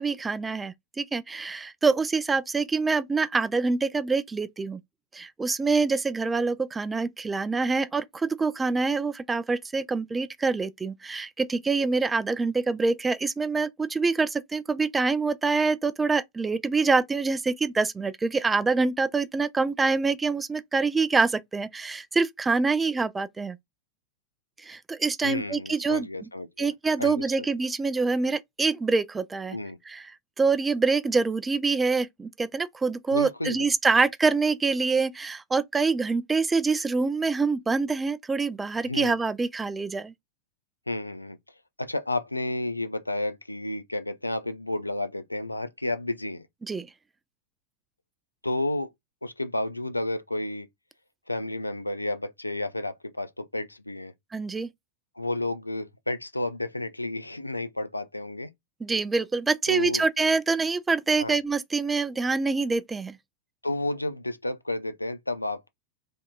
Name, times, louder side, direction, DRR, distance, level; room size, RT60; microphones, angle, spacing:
voice 1, 0.0-4.8 5.1-23.6 24.6-26.1 26.6-29.6 29.9-30.0 30.4-40.1 46.6-46.9 54.3-54.7 58.8-63.1, right 4 dB, 15° right, 0.3 m, -25 dB
voice 2, 25.2-26.7 27.0-27.5 29.5-29.8 33.1-33.9 38.8-39.1 40.9-41.4 41.8-46.5 48.4-48.9 49.2-50.7 51.3-54.1 55.2-58.5 59.7-60.0 61.2-61.4 63.6-65.7, left 2 dB, 85° left, 0.4 m, -31 dB
3.4 x 2.6 x 2.3 m
figure-of-eight pair, 90°, 0 cm